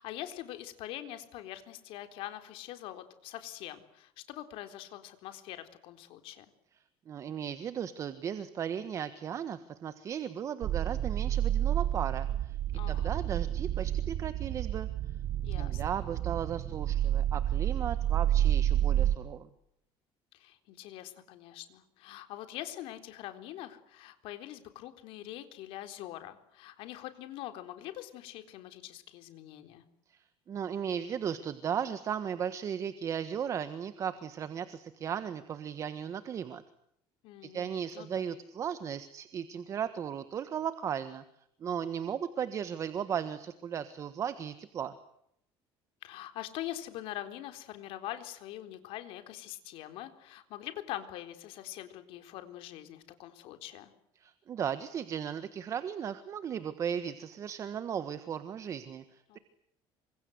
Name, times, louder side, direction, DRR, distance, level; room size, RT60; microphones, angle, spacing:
voice 1, 0.0-6.5 12.7-13.3 15.4-16.0 20.3-29.9 37.2-38.3 46.0-53.9 59.3-59.4, left 13 dB, 65° left, 8 dB, 3.9 m, -44 dB
voice 2, 7.1-12.6 12.9-14.9 15.6-19.5 30.1-36.6 37.4-41.2 41.6-44.9 54.2-59.4, right 8 dB, 30° right, 12 dB, 1.4 m, -36 dB
sound 1, 10.6-19.2, right 11 dB, 50° right, 1.2 m, -29 dB
28.5 x 25.5 x 8.0 m, 0.75 s
cardioid pair, 170°, 10 cm